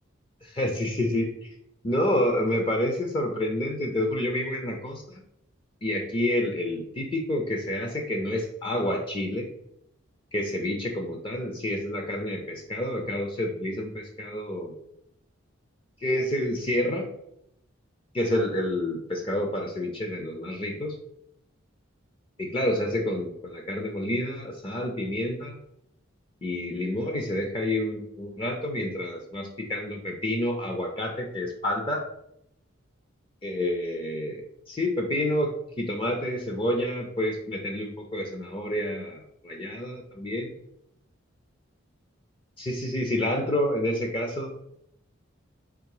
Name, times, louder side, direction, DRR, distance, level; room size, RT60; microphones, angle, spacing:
voice 1, 0.4-1.5 1.8-5.0 5.8-9.5 10.3-14.7 16.0-17.1 18.1-20.9 22.4-25.6 26.4-32.0 33.4-34.4 34.7-35.5 35.8-40.5 42.6-44.5, left 1 dB, 25° left, 2 dB, 0.4 m, -28 dB
3.7 x 2.8 x 4.7 m, 0.78 s
head